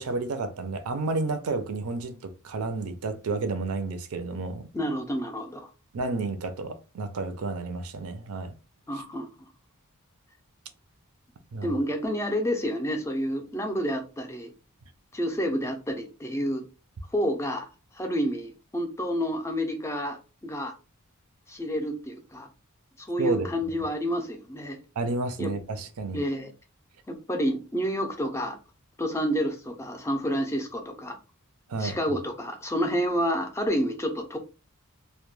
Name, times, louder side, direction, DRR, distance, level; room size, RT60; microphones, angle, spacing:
voice 1, 0.0-4.7 5.9-8.5 11.5-11.8 23.2-23.5 25.0-26.2 31.7-32.2, right 3 dB, 70° right, 0.5 m, -31 dB
voice 2, 4.7-5.7 8.9-9.3 11.6-14.5 15.1-16.6 17.1-17.7 17.9-20.7 21.5-22.5 23.0-24.8 25.4-25.5 26.1-26.5 27.1-28.6 29.0-31.2 31.8-34.4, equal, 15° left, 0.4 m, -29 dB
2.2 x 2.1 x 3.0 m
head